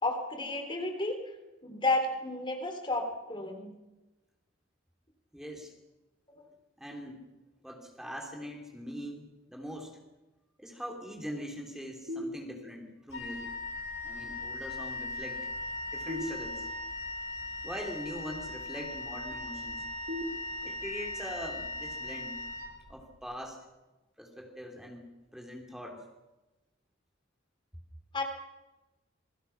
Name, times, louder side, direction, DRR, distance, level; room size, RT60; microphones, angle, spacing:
voice 1, 0.0-1.2 1.6-3.7 6.4-6.5 28.1-28.2, left 2 dB, 25° left, 4 dB, 3.5 m, -32 dB
voice 2, 5.3-5.7 6.8-7.2 7.6-10.0 10.6-13.5 14.0-15.5 15.9-16.7 17.6-19.8 20.6-22.4 22.9-23.6 24.2-26.0, equal, ahead, 1 dB, 3.1 m, -42 dB
sound 1, 12.1-13.0 16.1-17.1 20.1-21.1, left 1 dB, 65° right, 6.3 m, -40 dB
Wind instrument woodwind instrument, 13.1-23.2, left 2 dB, 70° left, 7.8 m, -39 dB
28.0 x 22.5 x 5.9 m, 1.1 s
head